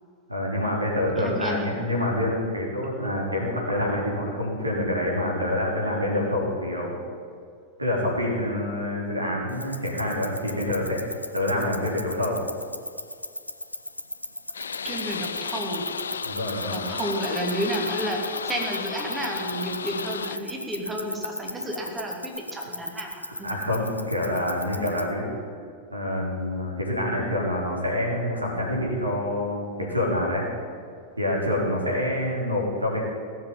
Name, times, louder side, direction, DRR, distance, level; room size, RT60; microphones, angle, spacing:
voice 1, 0.3-6.9 7.8-12.4 16.2-16.8 23.4-25.3 25.9-30.4 31.2-33.0, left 1 dB, 85° right, -2 dB, 3.7 m, -27 dB
voice 2, 1.1-1.8 14.8-15.8 16.7-23.5, right 1 dB, 15° right, 0 dB, 2.7 m, -31 dB
sound 1, 9.5-25.1, left 1 dB, 85° left, 0.8 m, -38 dB
sound 2, 14.5-20.4, left 6 dB, 70° left, 0.4 m, -33 dB
18.0 x 7.5 x 9.3 m, 2.3 s
figure-of-eight pair, 90°, 0 cm